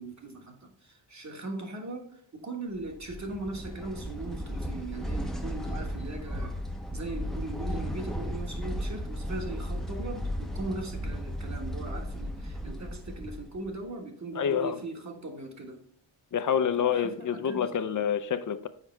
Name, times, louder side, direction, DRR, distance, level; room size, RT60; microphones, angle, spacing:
voice 1, 0.0-6.6 6.9-15.8 16.8-18.0, right 2 dB, 35° right, 1.3 m, -39 dB
sound 1, 2.8-13.8, equal, ahead, 0.7 m, -35 dB
voice 2, 14.4-14.8 16.3-18.7, left 8 dB, 40° left, 0.6 m, -27 dB
6.5 x 4.9 x 3.2 m
cardioid pair, 75°, 47 cm